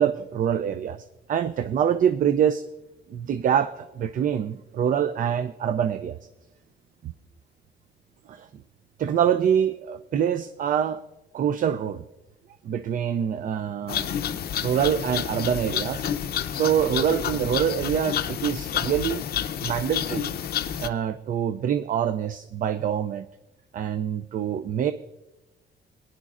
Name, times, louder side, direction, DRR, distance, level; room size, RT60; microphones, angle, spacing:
voice 1, 0.0-2.6 3.1-6.2 7.0-7.1 8.3-8.5 9.0-11.0 11.3-12.0 12.6-14.1 14.6-16.1 16.5-19.2 19.6-20.3 20.8-23.3 23.7-24.9, right 9 dB, 45° right, 12 dB, 0.4 m, -25 dB
sound 1, 13.9-20.9, left 10 dB, 55° left, 0.5 m, -29 dB
20.0 x 10.0 x 2.4 m, 1.0 s
wide cardioid pair, 160°, 19 cm